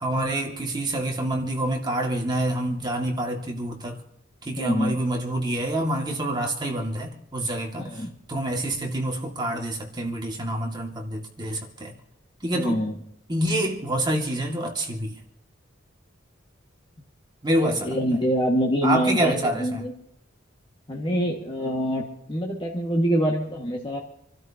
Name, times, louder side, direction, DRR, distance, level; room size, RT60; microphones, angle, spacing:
voice 1, 0.0-4.0 4.4-11.9 12.4-12.8 13.3-15.2 17.4-18.0 18.8-19.8, right 1 dB, 20° right, 2.2 m, -27 dB
voice 2, 4.6-5.0 7.8-8.1 12.5-13.0 17.8-19.9 20.9-24.0, equal, 25° left, 1.9 m, -25 dB
28.0 x 13.0 x 2.9 m
head